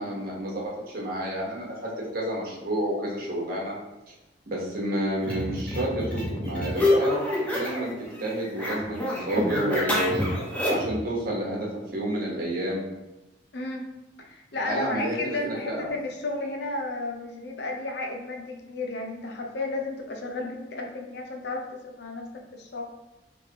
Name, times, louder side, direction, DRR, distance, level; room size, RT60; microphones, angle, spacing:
voice 1, 0.0-3.7 4.5-7.2 7.5-7.9 8.2-10.3 10.7-12.9 14.7-15.9, right 1 dB, 55° right, -4 dB, 1.1 m, -30 dB
sound 1, 5.2-7.9 8.2-11.0, left 1 dB, 10° left, 0.8 m, -27 dB
voice 2, 13.5-13.9 14.3-22.3 22.5-22.9, left 2 dB, 70° left, 2 dB, 0.6 m, -33 dB
3.4 x 3.1 x 2.9 m, 0.98 s
head